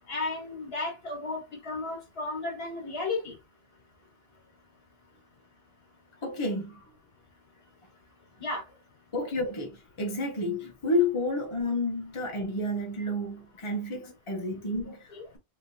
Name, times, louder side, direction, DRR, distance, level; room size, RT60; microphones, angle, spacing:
voice 1, 0.1-3.3 8.4-8.6 14.9-15.2, left 3 dB, 65° left, 1.8 m, -34 dB
voice 2, 6.2-6.8 9.1-15.4, left 2 dB, 30° left, 1.0 m, -30 dB
3.6 x 3.5 x 2.7 m
omnidirectional pair, 1.1 m